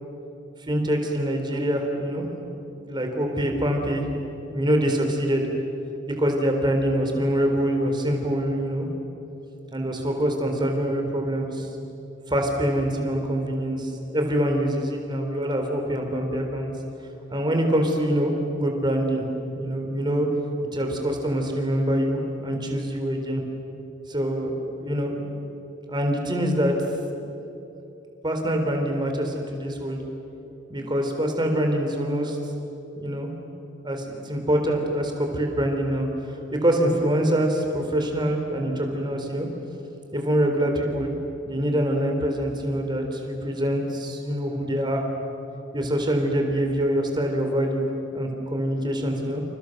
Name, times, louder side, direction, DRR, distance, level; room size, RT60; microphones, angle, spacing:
voice 1, 0.7-2.2 2.9-4.1 4.5-5.5 6.2-8.9 9.7-11.7 12.3-16.7 17.3-19.2 19.6-20.3 20.7-23.4 24.1-25.3 25.9-26.7 28.2-30.0 30.7-32.4 33.0-33.3 33.8-39.5 40.1-41.1 41.4-45.1 45.7-49.4, equal, 25° right, 3 dB, 4.0 m, -25 dB
29.5 x 28.5 x 6.7 m, 3.0 s
head